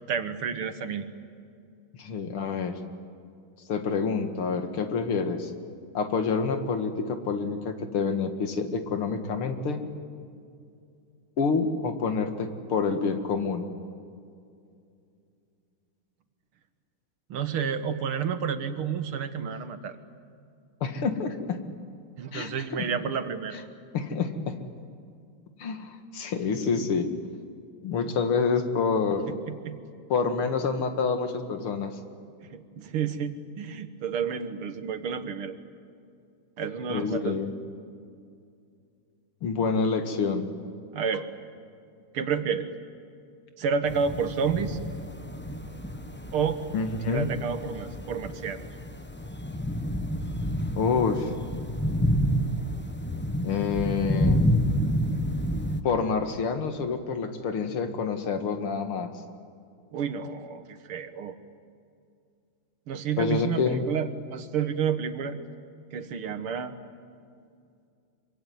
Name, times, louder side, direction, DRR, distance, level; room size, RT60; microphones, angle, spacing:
voice 1, 0.1-1.1 17.3-20.0 22.2-23.6 29.4-29.8 32.5-35.6 36.6-37.4 40.9-41.3 42.1-42.7 43.6-44.8 46.3-46.6 47.1-48.6 59.9-61.4 62.9-65.4 65.9-66.7, right 6 dB, 85° right, 10 dB, 2.3 m, -30 dB
voice 2, 2.0-2.8 3.7-5.5 5.9-9.9 11.4-13.7 20.8-21.6 22.3-22.8 23.5-23.6 23.9-24.6 25.6-27.1 27.8-29.3 30.1-32.0 36.9-37.5 39.4-40.5 46.7-47.3 50.8-51.3 53.4-54.4 55.8-59.1 63.2-63.8, left 5 dB, 90° left, 7 dB, 2.7 m, -27 dB
sound 1, 43.9-55.8, equal, 10° left, 0.8 m, -29 dB
25.5 x 24.0 x 9.5 m, 2.4 s
omnidirectional pair, 2.3 m